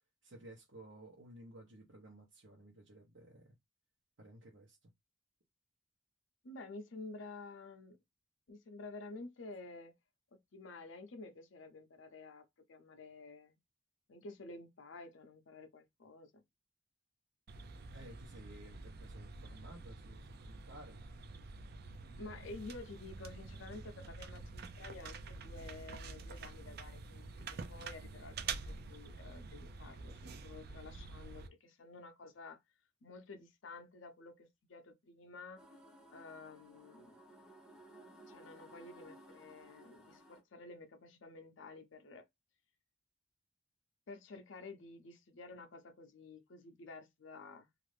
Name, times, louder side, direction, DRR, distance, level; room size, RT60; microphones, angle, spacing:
voice 1, 0.2-3.6 4.2-4.9 17.9-21.0, right 1 dB, 85° right, 0.8 m, -55 dB
voice 2, 6.4-8.0 8.5-10.0 10.3-13.6 14.1-16.4 22.1-32.6 33.0-35.6 36.1-37.2 38.3-42.3 44.1-47.7, left 3 dB, 80° left, 0.6 m, -51 dB
sound 1, 17.5-31.5, right 4 dB, 55° right, 0.4 m, -47 dB
sound 2, 35.6-40.4, right 1 dB, 5° right, 0.6 m, -58 dB
2.6 x 2.4 x 3.2 m
head